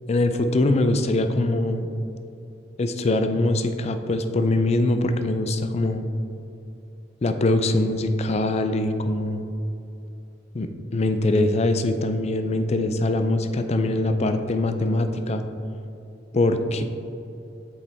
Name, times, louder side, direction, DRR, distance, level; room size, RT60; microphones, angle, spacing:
voice 1, 0.1-1.9 2.8-6.0 7.2-9.4 10.5-15.4 16.3-16.8, left 2 dB, 35° left, 8 dB, 0.4 m, -23 dB
7.8 x 5.4 x 3.4 m, 2.8 s
head